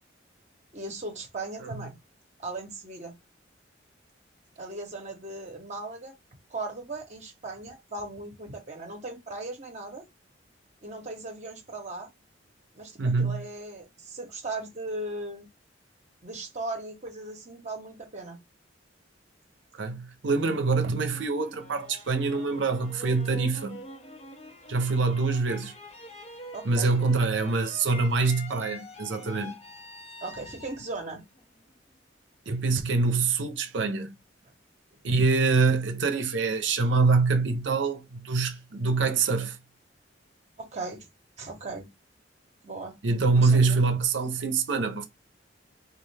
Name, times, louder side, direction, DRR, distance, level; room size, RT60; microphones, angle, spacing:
voice 1, 0.7-1.9 2.4-3.1 4.6-6.1 6.5-10.0 10.8-12.1 12.7-15.5 16.2-18.4 26.5-27.0 30.2-31.2 40.6-41.1 41.4-41.9 42.6-43.0 43.3-43.8, right 2 dB, 40° right, 0.8 m, -38 dB
voice 2, 13.0-13.4 19.8-23.8 24.7-25.7 26.6-29.6 32.5-34.1 35.0-39.6 43.0-45.1, right 4 dB, 70° right, 0.6 m, -25 dB
sound 1, 20.9-32.0, left 1 dB, 35° left, 0.6 m, -45 dB
3.3 x 2.5 x 3.3 m
head